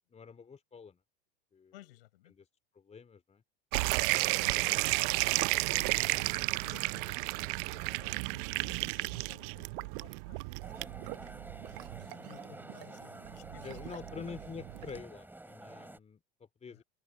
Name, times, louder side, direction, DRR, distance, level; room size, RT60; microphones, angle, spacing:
voice 1, 0.1-1.0 1.5-1.7 2.3-2.5 2.7-3.4 4.5-5.0 5.3-6.1 11.2-11.6 13.6-16.8, left 6 dB, 20° left, 3.6 m, -48 dB
voice 2, 1.7-2.3 3.9-5.0 6.0-10.6 11.9-14.4 16.7-16.8, left 17 dB, 75° left, 6.9 m, -56 dB
sound 1, 3.7-15.0, right 29 dB, 60° right, 0.5 m, -33 dB
sound 2, 10.6-16.0, right 2 dB, 5° right, 4.4 m, -49 dB
hypercardioid pair, 95°, 29 cm